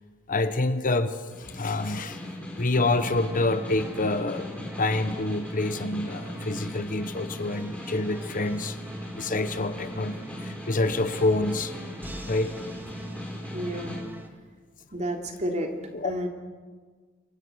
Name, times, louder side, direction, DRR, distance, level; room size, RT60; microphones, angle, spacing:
voice 1, 0.3-2.2 2.6-8.8 9.1-11.7 12.3-12.5 15.9-16.1, left 2 dB, 40° left, 10 dB, 1.1 m, -27 dB
Snare drum, 1.3-14.0, left 1 dB, 5° left, 5.3 m, -40 dB
sound 1, 2.7-14.3, right 1 dB, 10° right, 1.7 m, -41 dB
voice 2, 13.5-14.1 14.9-15.7 16.0-16.3, right 1 dB, 35° right, 2 dB, 3.1 m, -31 dB
27.5 x 23.5 x 6.4 m, 1.5 s
head